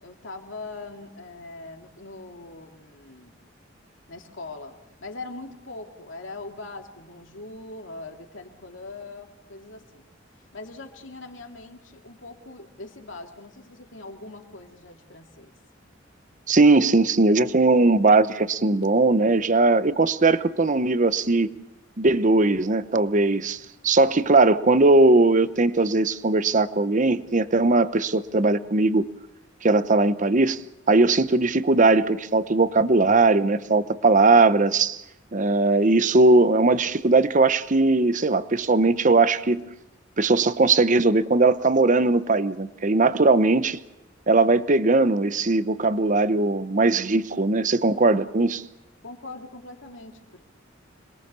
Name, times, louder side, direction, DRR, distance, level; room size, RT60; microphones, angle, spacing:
voice 1, 0.0-3.4 4.1-10.1 10.5-15.5 49.0-50.5, left 2 dB, 70° left, 2.6 m, -41 dB
voice 2, 16.5-21.5 22.0-23.6 23.8-29.1 29.6-30.6 30.9-35.0 35.3-39.7 40.2-43.8 44.3-48.6, right 3 dB, 40° right, 0.9 m, -19 dB
26.5 x 21.5 x 6.9 m
head